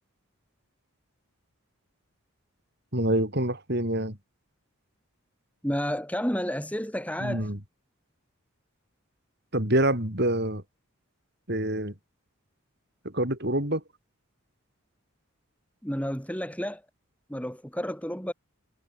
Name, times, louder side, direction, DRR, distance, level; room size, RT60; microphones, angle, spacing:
voice 1, 2.9-4.2 7.2-7.6 9.5-10.6 11.5-11.9 13.0-13.8, right 1 dB, 50° right, 6.5 m, -26 dB
voice 2, 5.6-7.5 15.8-16.8 17.3-18.3, equal, 5° left, 7.1 m, -31 dB
head